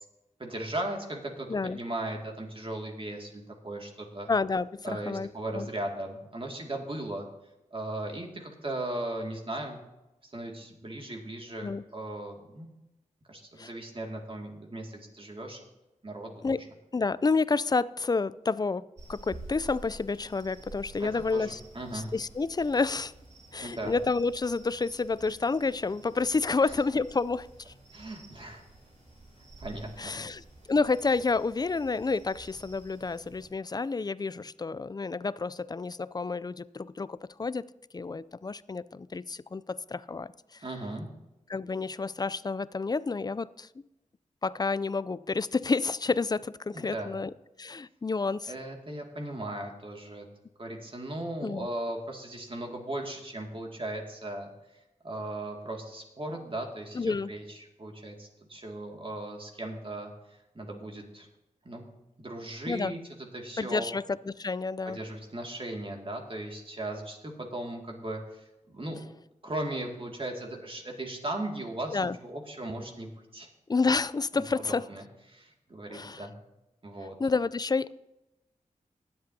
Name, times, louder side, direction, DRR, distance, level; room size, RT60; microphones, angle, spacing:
voice 1, 0.4-4.3 4.8-7.3 7.7-9.8 10.2-12.7 13.3-15.6 16.0-16.6 21.0-22.1 23.6-23.9 26.6-26.7 27.9-28.6 29.6-30.2 40.6-41.1 46.7-47.1 48.5-50.3 50.6-54.5 55.0-61.3 61.6-61.9 62.2-63.9 64.9-69.0 69.4-73.5 74.3-76.3 76.8-77.2, right 1 dB, 40° right, 1 dB, 2.2 m, -37 dB
voice 2, 4.3-5.3 5.5-5.7 11.6-11.8 13.6-13.7 16.4-16.6 16.9-21.6 21.9-23.1 23.5-27.7 30.0-30.4 30.7-37.6 37.9-40.6 41.5-43.7 44.4-47.3 47.6-48.5 51.4-51.7 56.9-57.3 62.7-62.9 63.6-65.0 71.9-72.2 73.7-74.8 75.9-76.2 77.2-77.9, left 4 dB, 30° left, 18 dB, 0.4 m, -29 dB
sound 1, 19.0-33.5, right 2 dB, 60° right, 3.7 m, -50 dB
20.5 x 7.8 x 2.8 m, 0.96 s
cardioid pair, 45°, 14 cm